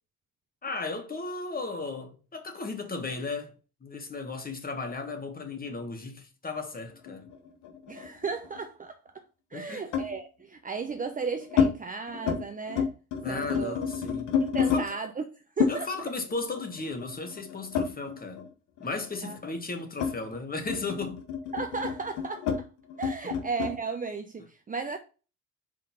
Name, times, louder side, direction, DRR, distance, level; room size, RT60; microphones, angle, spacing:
voice 1, 0.6-3.5 3.8-7.3 9.5-9.8 13.2-14.3 14.7-14.9 15.7-18.5 18.8-21.2, left 3 dB, 30° left, 1.5 m, -35 dB
sound 1, 7.1-8.6 9.9-10.2 10.9-11.7 12.1-12.4 12.7-14.8 15.6-18.5 18.8-23.8, left 7 dB, 85° left, 1.3 m, -30 dB
voice 2, 7.9-9.0 9.5-12.9 13.3-13.8 14.4-15.2 15.6-15.9 19.2-19.4 21.5-22.7 23.0-25.0, right 4 dB, 25° right, 0.7 m, -35 dB
5.1 x 3.8 x 5.6 m
cardioid pair, 90°, 30 cm